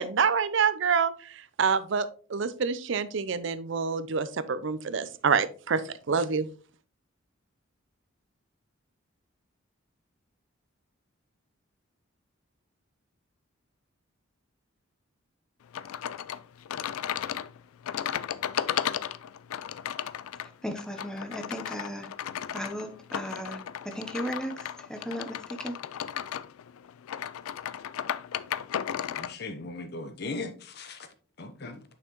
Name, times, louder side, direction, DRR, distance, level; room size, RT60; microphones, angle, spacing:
voice 1, 0.0-6.5, right 5 dB, 60° right, 0.5 m, -27 dB
sound 1, 15.7-29.3, left 9 dB, 85° left, 0.3 m, -35 dB
voice 2, 20.6-22.1 22.5-23.6 23.8-25.8, equal, 5° left, 0.7 m, -36 dB
voice 3, 29.1-31.0 31.4-31.8, left 3 dB, 50° left, 0.8 m, -38 dB
6.8 x 5.6 x 3.0 m
head